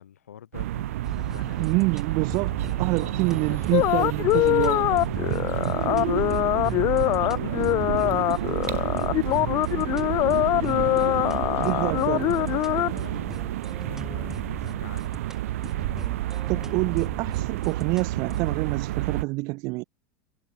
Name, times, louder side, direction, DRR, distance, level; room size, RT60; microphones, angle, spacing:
voice 1, 0.0-1.8 2.9-3.7 4.4-9.9 11.0-15.2, left 10 dB, 80° left, 3.5 m, -45 dB
sound 1, 0.5-19.2, right 15 dB, 70° right, 0.9 m, -30 dB
sound 2, 1.0-18.6, right 1 dB, 5° right, 1.2 m, -40 dB
voice 2, 1.6-4.9 11.6-12.3 16.5-19.8, right 24 dB, 55° right, 0.6 m, -27 dB
sound 3, 3.7-12.9, left 18 dB, 45° left, 0.4 m, -23 dB
hypercardioid pair, 85°, 8 cm